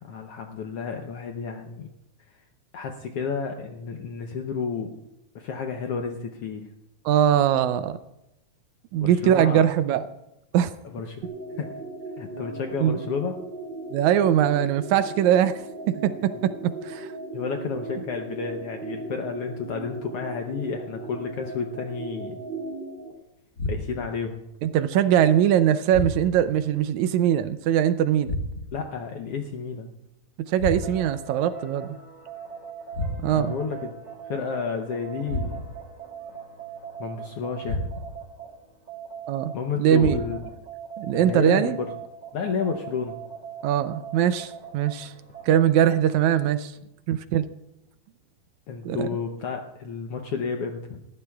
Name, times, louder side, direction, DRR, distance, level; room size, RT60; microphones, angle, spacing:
voice 1, 0.0-1.9 2.3-2.4 2.7-5.0 5.3-6.7 9.0-9.7 10.9-11.2 11.5-11.8 12.2-13.4 17.3-22.4 23.6-24.4 28.7-29.9 33.3-33.9 34.3-35.6 37.0-37.8 39.5-40.5 41.1-41.9 42.3-43.2 48.7-51.0, left 5 dB, 75° left, 4 dB, 1.4 m, -31 dB
voice 2, 7.1-8.0 8.9-10.0 10.5-10.7 12.8-13.0 13.9-17.1 24.6-28.3 30.5-31.9 33.2-33.5 39.3-39.5 39.8-40.2 41.0-41.8 43.6-45.1 45.5-46.7 47.1-47.4 48.8-49.1, right 10 dB, 80° right, 12 dB, 1.8 m, -21 dB
sound 1, 11.2-23.1, right 2 dB, 20° right, 2.0 m, -37 dB
sound 2, 23.6-24.2 25.9-26.5 28.2-28.9 30.6-31.2 32.9-33.6 35.3-35.9 37.6-38.3 40.0-40.6, left 1 dB, 35° left, 2.1 m, -31 dB
sound 3, 30.7-39.5 39.9-45.9, right 7 dB, 35° right, 2.9 m, -41 dB
19.0 x 15.0 x 2.3 m, 0.88 s
omnidirectional pair, 3.6 m